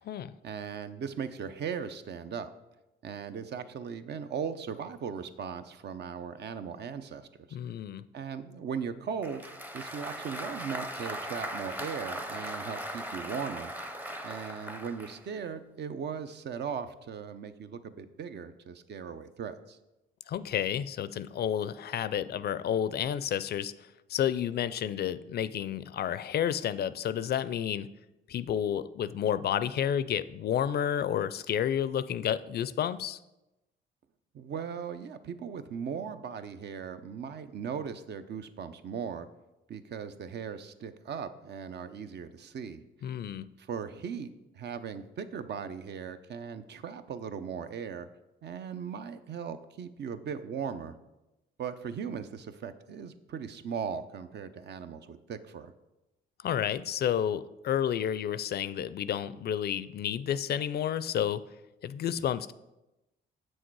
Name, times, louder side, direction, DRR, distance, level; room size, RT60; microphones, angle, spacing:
voice 1, 0.4-2.5 3.0-7.6 8.1-9.4 9.7-13.7 14.2-19.8 34.3-39.3 39.7-42.8 43.6-48.1 48.4-50.9 51.6-55.7, right 7 dB, 60° right, 10 dB, 0.7 m, -38 dB
voice 2, 7.5-8.0 20.3-23.7 24.1-27.9 28.3-33.2 43.0-43.5 56.4-61.4 61.8-62.5, left 9 dB, 55° left, 15 dB, 0.4 m, -30 dB
Applause, 9.2-15.2, equal, 10° right, 0.7 m, -39 dB
7.6 x 6.4 x 4.7 m, 0.96 s
cardioid pair, 90°, 20 cm